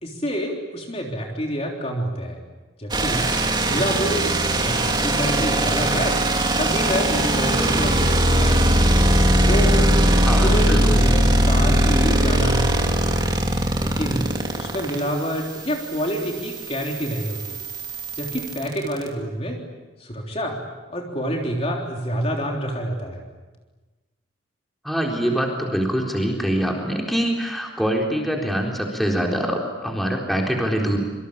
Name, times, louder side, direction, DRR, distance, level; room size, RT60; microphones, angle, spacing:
voice 1, 0.0-2.4 2.8-3.3 3.6-6.2 6.6-8.6 9.5-9.9 10.4-13.2 13.7-14.2 14.6-17.6 18.2-19.6 20.0-20.6 20.9-23.2, equal, 30° left, 1 dB, 3.5 m, -27 dB
sound 1, 2.9-19.1, right 1 dB, 20° right, 3.0 m, -20 dB
voice 2, 10.2-11.0 24.8-31.0, equal, ahead, 0 dB, 4.1 m, -24 dB
26.5 x 25.0 x 8.8 m, 1.2 s
head